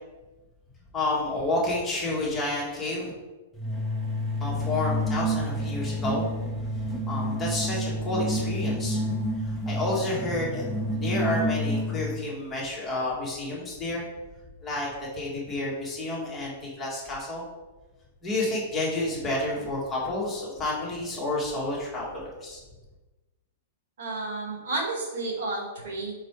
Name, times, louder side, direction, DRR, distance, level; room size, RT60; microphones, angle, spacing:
voice 1, 0.9-3.1 4.4-6.3 7.1-9.0 9.4-10.7 10.9-14.0 14.6-14.9 15.1-17.4 18.2-22.6, left 2 dB, 10° left, -6 dB, 1.9 m, -30 dB
sound 1, 3.6-12.2, equal, 5° right, 0.8 m, -29 dB
voice 2, 24.0-26.1, right 2 dB, 70° right, 0 dB, 2.0 m, -31 dB
4.9 x 4.8 x 4.8 m, 1.2 s
supercardioid pair, 160°, 0 cm